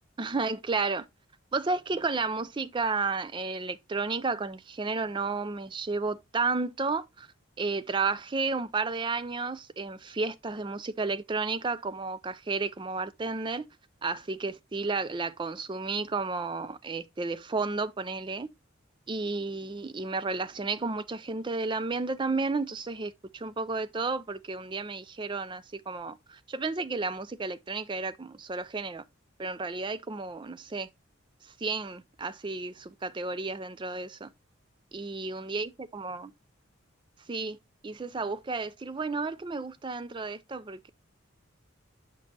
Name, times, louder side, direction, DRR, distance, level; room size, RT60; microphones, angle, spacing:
voice 1, 0.2-1.1 1.5-13.7 14.0-18.5 19.1-29.0 29.4-30.9 31.4-34.3 34.9-36.3 37.2-37.6 37.8-40.9, right 3 dB, 25° right, 0.4 m, -32 dB
6.2 x 6.0 x 2.7 m
head